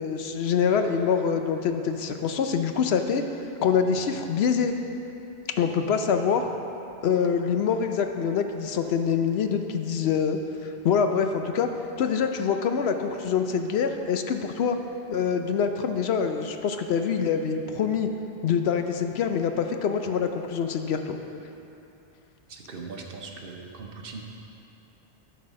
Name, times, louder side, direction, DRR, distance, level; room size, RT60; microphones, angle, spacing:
voice 1, 0.0-3.2 3.6-4.7 5.6-6.5 7.0-11.7 12.0-14.8 15.1-18.1 18.4-21.2, left 6 dB, 70° left, 6 dB, 0.8 m, -25 dB
voice 2, 22.5-24.2, right 4 dB, 60° right, 1 dB, 1.0 m, -40 dB
12.0 x 4.1 x 6.3 m, 2.8 s
omnidirectional pair, 1.1 m